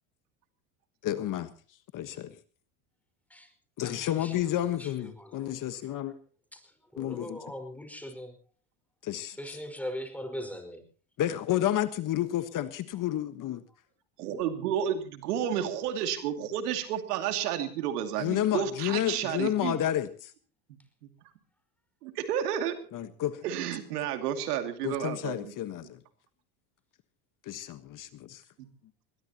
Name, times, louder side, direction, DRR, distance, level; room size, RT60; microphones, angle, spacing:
voice 1, 1.0-1.5 1.9-2.3 3.8-6.1 7.0-7.4 9.0-9.4 11.2-13.6 18.2-20.3 22.9-23.4 24.8-26.0 27.5-28.4, left 12 dB, 45° left, 11 dB, 1.4 m, -30 dB
voice 2, 3.8-5.8 6.5-8.4 9.4-10.8, equal, 5° left, 5 dB, 5.1 m, -41 dB
voice 3, 14.2-19.8 22.0-22.8 23.4-25.5 28.6-28.7, right 9 dB, 85° right, 6 dB, 2.7 m, -31 dB
20.5 x 20.5 x 3.0 m, 0.39 s
supercardioid pair, 105°, 45 cm